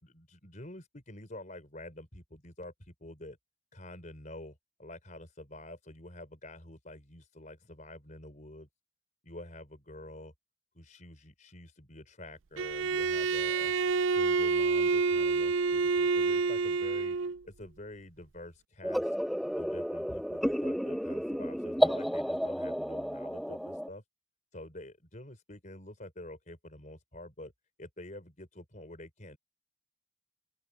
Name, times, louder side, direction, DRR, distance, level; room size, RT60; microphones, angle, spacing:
voice 1, 0.0-3.4 3.7-8.7 9.2-10.3 10.7-13.7 14.1-17.2 17.4-19.2 19.5-24.0 24.5-27.5 27.8-29.4, left 1 dB, 40° left, 4.6 m, -48 dB
Bowed string instrument, 12.6-17.4, right 4 dB, 70° right, 0.5 m, -28 dB
sound 1, 18.8-23.9, equal, ahead, 0.4 m, -31 dB
open air
head